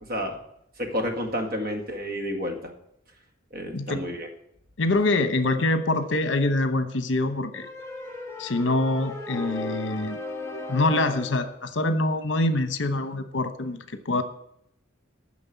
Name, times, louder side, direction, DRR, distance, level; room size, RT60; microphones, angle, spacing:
voice 1, 0.8-2.7 3.5-4.3, equal, 50° right, 4 dB, 1.9 m, -30 dB
voice 2, 4.8-7.7 8.4-10.2 10.7-14.2, left 2 dB, 65° left, 10 dB, 1.0 m, -25 dB
sound 1, 7.5-11.6, left 3 dB, 15° left, 1.5 m, -36 dB
9.7 x 6.2 x 8.3 m, 0.74 s
head